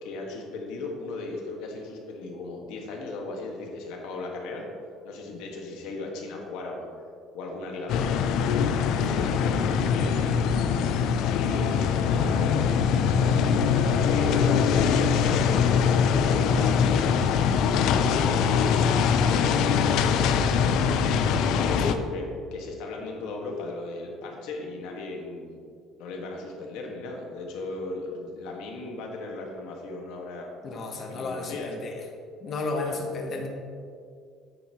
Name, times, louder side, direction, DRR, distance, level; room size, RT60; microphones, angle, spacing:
voice 1, 0.0-4.6 5.0-6.9 7.3-8.2 9.0-10.4 10.8-12.9 14.1-17.2 17.9-18.4 19.1-21.1 21.3-22.2 22.5-25.6 26.0-30.5 31.1-31.7 32.7-33.0, left 3 dB, 75° left, 0 dB, 1.6 m, -36 dB
sound 1, 7.9-21.9, left 6 dB, 55° left, 0.5 m, -23 dB
voice 2, 30.6-32.0 32.4-33.5, left 3 dB, 30° left, 2 dB, 1.1 m, -33 dB
9.8 x 8.0 x 3.0 m, 2.3 s
cardioid pair, 175°, 0 cm